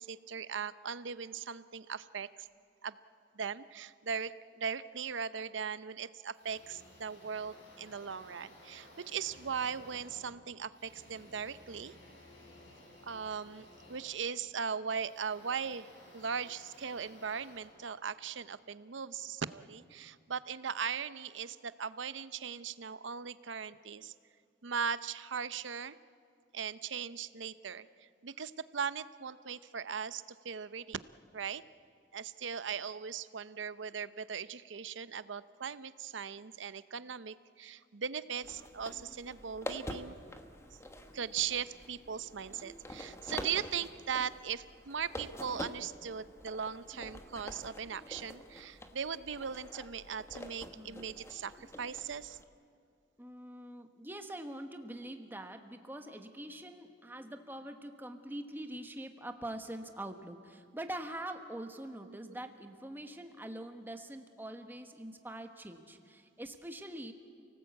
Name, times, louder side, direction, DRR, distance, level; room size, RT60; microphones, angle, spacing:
voice 1, 0.0-2.5 2.8-3.0 3.3-11.9 13.0-24.1 24.6-26.0 26.5-31.0 31.3-31.6 32.1-40.2 41.1-52.4 62.0-62.2, right 7 dB, 70° right, 15 dB, 0.7 m, -39 dB
sound 1, 6.3-18.5, left 1 dB, 65° left, 6.9 m, -57 dB
sound 2, 38.4-52.4, equal, 15° left, 1.2 m, -47 dB
voice 2, 53.2-67.1, right 1 dB, 10° right, 6 dB, 1.3 m, -44 dB
29.5 x 18.5 x 8.3 m, 2.4 s
head